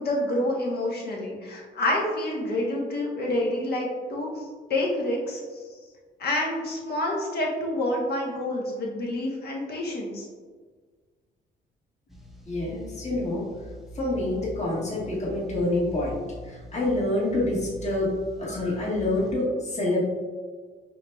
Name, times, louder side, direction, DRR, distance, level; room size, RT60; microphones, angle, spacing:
voice 1, 0.0-5.8 6.2-10.3, left 1 dB, 55° left, -2 dB, 1.1 m, -28 dB
sound 1, 12.1-19.3, equal, ahead, 0.5 m, -43 dB
voice 2, 12.5-13.5 13.9-16.2 16.4-18.1 18.4-20.0, left 1 dB, 35° left, -6 dB, 1.4 m, -27 dB
4.5 x 3.3 x 2.3 m, 1.5 s
cardioid pair, 90°, 20 cm